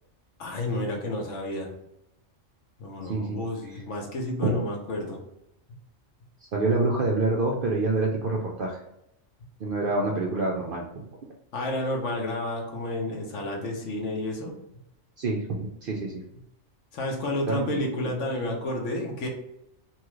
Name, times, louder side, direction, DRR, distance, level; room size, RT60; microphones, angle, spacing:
voice 1, 0.4-1.7 2.8-5.2 11.5-14.5 16.9-19.3, left 1 dB, 70° left, 1 dB, 1.1 m, -31 dB
voice 2, 3.0-3.4 4.4-4.6 6.5-8.8 9.6-11.0 15.2-16.2 17.5-17.7, right 3 dB, 65° right, -1 dB, 0.5 m, -26 dB
2.9 x 2.4 x 3.0 m, 0.83 s
omnidirectional pair, 1.3 m